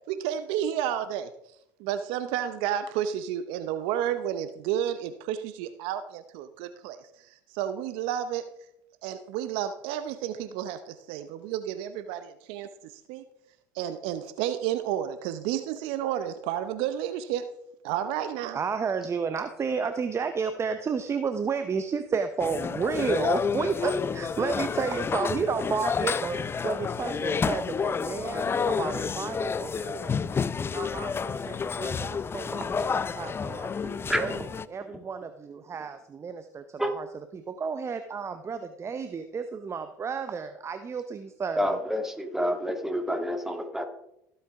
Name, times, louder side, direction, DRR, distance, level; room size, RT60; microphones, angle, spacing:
voice 1, 0.1-1.3 1.8-7.0 7.5-8.4 9.0-12.7 13.1-13.2 13.7-17.5 17.8-18.6, right 10 dB, 65° right, 11 dB, 0.7 m, -31 dB
voice 2, 18.5-30.2 30.7-33.8 34.2-37.1 37.3-41.7, right 5 dB, 30° right, 9 dB, 0.8 m, -32 dB
sound 1, 22.4-34.6, left 6 dB, 25° left, 0.5 m, -30 dB
voice 3, 33.8-34.2 36.8-37.0 41.6-43.9, equal, 5° right, 5 dB, 2.1 m, -28 dB
15.5 x 7.9 x 3.6 m, 0.79 s
hypercardioid pair, 75°, 10 cm